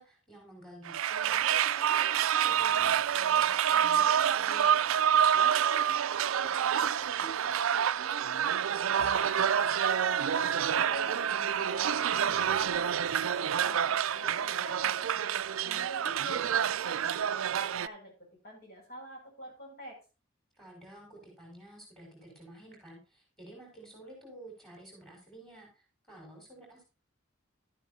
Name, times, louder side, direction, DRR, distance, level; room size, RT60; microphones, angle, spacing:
voice 1, 0.0-5.9 6.1-9.9 15.7-16.3 20.6-26.8, right 2 dB, ahead, -1 dB, 5.4 m, -51 dB
sound 1, 0.9-17.9, right 9 dB, 70° right, 0.4 m, -28 dB
sound 2, 9.0-17.1, right 2 dB, 75° left, 1.4 m, -43 dB
voice 2, 10.7-20.0, equal, 50° left, -1 dB, 5.9 m, -47 dB
13.0 x 9.1 x 2.7 m, 0.31 s
head